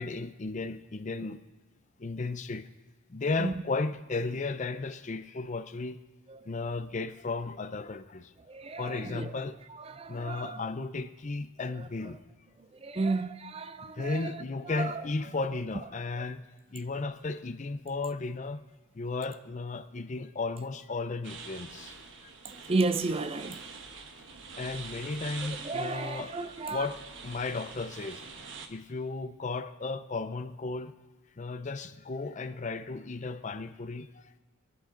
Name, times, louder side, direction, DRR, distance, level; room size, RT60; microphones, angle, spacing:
voice 1, 0.0-1.4 2.0-2.7 3.1-6.0 6.5-8.3 8.8-9.6 10.1-12.2 13.8-16.4 16.7-18.6 18.9-21.9 22.2-22.3 24.6-26.3 26.7-28.2 28.7-30.9 31.4-34.4, left 3 dB, 35° left, 0.5 m, -34 dB
voice 2, 8.5-9.3 9.9-10.6 12.8-14.3 14.7-14.9 22.4-23.6 25.6-26.9, right 3 dB, 25° right, 0.5 m, -32 dB
sound 1, 21.2-28.7, right 4 dB, 60° right, 1.2 m, -45 dB
22.5 x 11.0 x 3.8 m
head